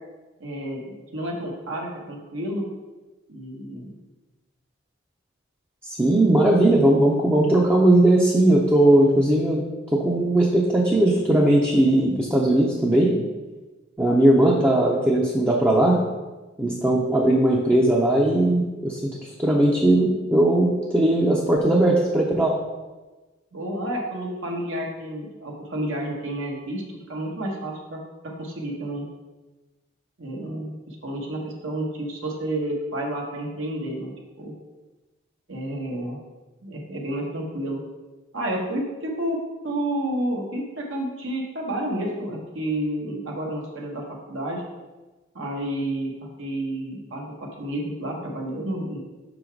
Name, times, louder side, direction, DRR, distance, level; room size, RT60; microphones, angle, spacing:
voice 1, 0.4-2.7 3.3-4.0 23.5-29.1 30.2-34.5 35.5-36.2 36.6-37.8 38.3-44.6 45.3-46.1 46.4-49.0, right 1 dB, 75° right, 0 dB, 1.0 m, -30 dB
voice 2, 5.8-13.1 14.0-16.1 16.6-22.5, right 1 dB, 10° right, -3 dB, 0.5 m, -19 dB
5.7 x 3.9 x 4.5 m, 1.2 s
head